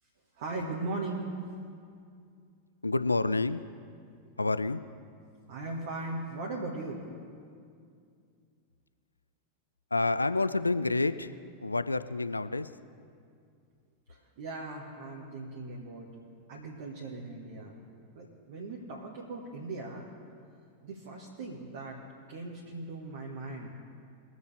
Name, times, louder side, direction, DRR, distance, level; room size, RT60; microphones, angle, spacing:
voice 1, 0.4-1.3 5.5-7.0 14.1-16.1 16.5-17.8 18.1-20.1 20.8-22.0 22.3-23.7, right 2 dB, 55° right, -2 dB, 1.5 m, -38 dB
voice 2, 2.8-3.6 4.4-4.8 9.9-11.3 11.6-12.7, left 3 dB, 80° left, 13 dB, 0.3 m, -28 dB
22.0 x 7.9 x 3.4 m, 2.3 s
figure-of-eight pair, 90°, 0 cm